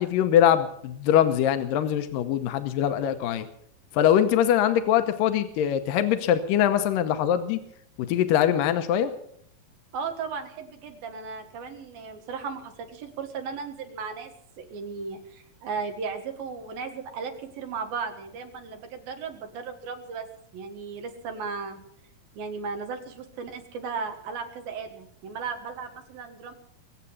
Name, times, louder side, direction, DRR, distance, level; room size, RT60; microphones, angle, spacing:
voice 1, 0.0-3.5 3.9-7.6 8.0-9.1, left 10 dB, 80° left, 9 dB, 2.6 m, -22 dB
voice 2, 9.9-14.3 14.6-20.3 20.5-21.8 22.4-26.5, right 5 dB, 85° right, 5 dB, 3.5 m, -36 dB
22.5 x 8.1 x 7.2 m, 0.68 s
omnidirectional pair, 4.0 m